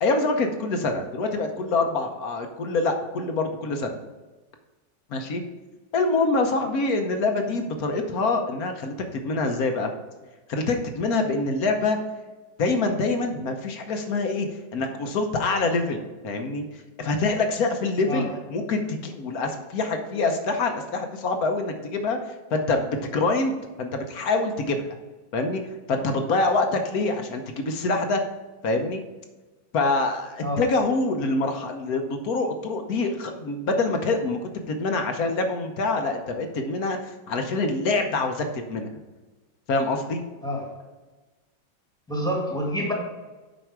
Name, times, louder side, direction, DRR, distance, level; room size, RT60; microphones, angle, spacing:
voice 1, 0.0-4.0 5.1-5.4 5.9-9.9 10.5-12.0 12.6-14.5 14.7-24.9 25.3-28.2 28.6-29.0 29.7-38.9 39.7-40.2, left 3 dB, 55° left, 5 dB, 1.2 m, -25 dB
voice 2, 42.1-42.9, equal, ahead, -1 dB, 1.5 m, -27 dB
7.9 x 5.3 x 4.7 m, 1.2 s
omnidirectional pair, 2.1 m